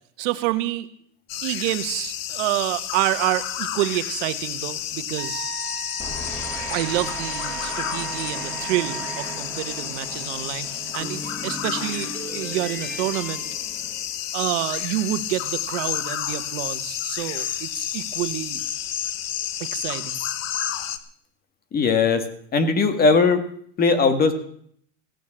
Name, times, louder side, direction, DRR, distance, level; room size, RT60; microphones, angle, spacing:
voice 1, 0.2-0.9 1.4-5.5 6.7-13.4 14.3-18.6 19.6-20.2, right 15 dB, 60° right, 11 dB, 1.4 m, -28 dB
sound 1, 1.3-21.0, left 11 dB, 80° left, 1.4 m, -31 dB
Wind instrument woodwind instrument, 5.2-9.4, right 9 dB, 30° right, 2.9 m, -37 dB
sound 2, 6.0-14.5, right 1 dB, 5° left, 2.8 m, -37 dB
voice 2, 21.7-22.3 22.5-23.5 23.8-24.3, left 4 dB, 25° left, 10 dB, 1.6 m, -19 dB
15.5 x 9.3 x 7.5 m, 0.63 s
supercardioid pair, 150°, 40 cm